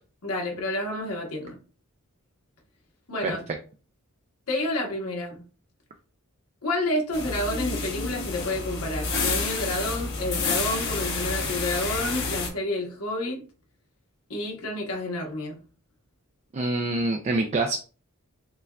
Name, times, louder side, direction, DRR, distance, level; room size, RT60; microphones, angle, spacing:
voice 1, 0.2-1.6 3.1-3.4 4.5-5.4 6.6-13.4 14.3-15.6, left 1 dB, 85° left, 1 dB, 1.2 m, -29 dB
sound 1, 7.1-12.5, left 4 dB, 55° left, 1.4 m, -29 dB
voice 2, 16.5-17.8, right 2 dB, 30° right, 4 dB, 0.4 m, -25 dB
6.7 x 2.3 x 2.3 m, 0.37 s
head